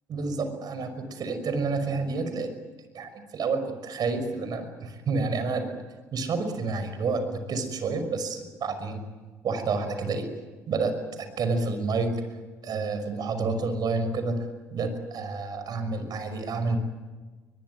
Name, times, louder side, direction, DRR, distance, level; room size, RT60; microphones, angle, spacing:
voice 1, 0.1-2.5 2.9-5.7 6.1-9.0 9.4-10.3 10.7-12.1 12.6-14.4 14.7-16.8, right 4 dB, 50° right, 9 dB, 5.6 m, -29 dB
23.0 x 22.0 x 9.5 m, 1.3 s
hypercardioid pair, 60°, 8 cm